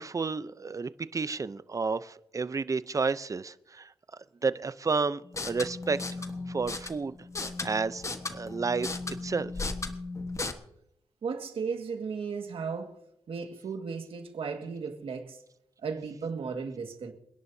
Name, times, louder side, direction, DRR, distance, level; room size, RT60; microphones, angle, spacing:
voice 1, 0.0-3.9 4.4-6.0 6.5-7.1 7.6-8.0 8.3-9.5, right 4 dB, 35° right, 0.6 m, -31 dB
sound 1, 5.2-10.5, left 3 dB, 30° left, 1.3 m, -36 dB
voice 2, 11.2-13.0 13.3-15.4 15.8-17.1, right 5 dB, 75° right, 1.9 m, -35 dB
28.0 x 11.0 x 2.7 m
cardioid pair, 75°, 10 cm